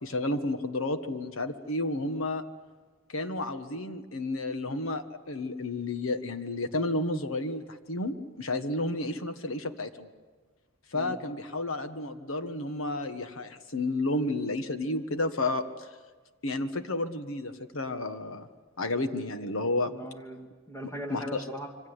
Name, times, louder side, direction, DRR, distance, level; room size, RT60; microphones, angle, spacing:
voice 1, 0.0-2.4 3.1-10.1 10.9-15.9 16.4-18.5 18.8-19.9 21.1-21.4, left 2 dB, 80° left, 9 dB, 1.5 m, -31 dB
voice 2, 19.9-21.9, equal, 15° left, 3 dB, 2.4 m, -40 dB
26.5 x 24.5 x 8.2 m, 1.4 s
head